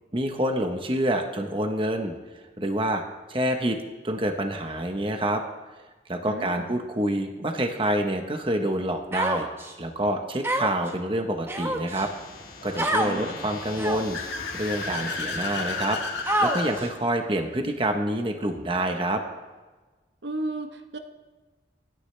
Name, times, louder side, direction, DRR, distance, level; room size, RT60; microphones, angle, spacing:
voice 1, 0.1-2.1 2.6-3.0 3.3-3.8 4.0-5.4 6.1-9.5 9.8-12.1 12.6-14.2 14.5-16.0 16.4-19.2, right 1 dB, 30° right, 4 dB, 1.1 m, -27 dB
voice 2, 6.3-6.8 13.0-13.4 20.2-21.0, right 2 dB, 75° right, 6 dB, 1.0 m, -34 dB
Human voice, 9.1-9.7 10.4-10.9 11.5-12.1 12.8-13.1 13.8-14.2 14.9-15.0 16.3-16.9, right 1 dB, 15° right, 0.9 m, -26 dB
sound 1, 11.9-16.9, left 3 dB, 50° left, 1.8 m, -41 dB
Car / Accelerating revving vroom, 13.5-16.7, left 4 dB, 90° left, 1.9 m, -33 dB
25.0 x 10.0 x 3.3 m, 1.3 s
head